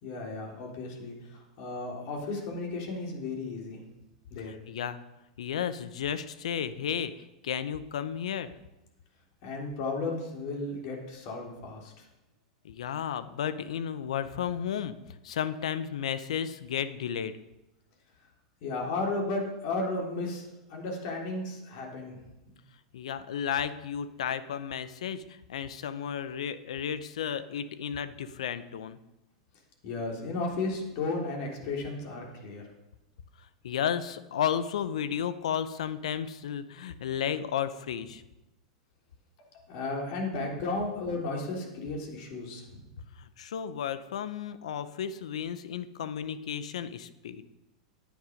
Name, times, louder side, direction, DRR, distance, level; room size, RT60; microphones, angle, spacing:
voice 1, 0.0-3.8 4.3-4.6 9.4-12.1 18.6-22.2 22.5-22.6 29.8-32.6 39.4-42.8, left 3 dB, 55° left, -1 dB, 3.4 m, -34 dB
voice 2, 4.7-5.0 5.4-8.5 12.6-15.0 15.2-17.3 22.9-29.0 33.6-38.2 43.2-47.5, left 8 dB, 75° left, 13 dB, 0.7 m, -33 dB
10.0 x 9.4 x 5.2 m, 0.99 s
hypercardioid pair, 105°, 3 cm